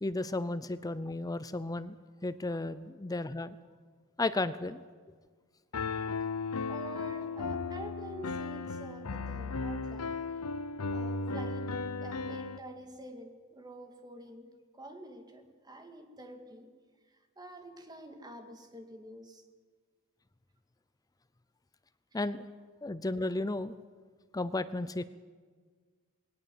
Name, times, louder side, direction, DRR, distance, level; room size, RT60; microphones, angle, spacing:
voice 1, 0.0-1.9 2.2-3.6 4.2-4.8 22.1-22.5 22.8-23.7 24.3-25.0, left 2 dB, 15° left, 14 dB, 0.5 m, -33 dB
Piano, 5.7-12.6, left 4 dB, 90° left, 0.9 m, -35 dB
voice 2, 6.7-10.2 10.9-11.7 12.0-16.7 17.1-19.4, right 1 dB, 20° right, 5 dB, 2.2 m, -48 dB
20.0 x 18.0 x 7.8 m, 1.5 s
head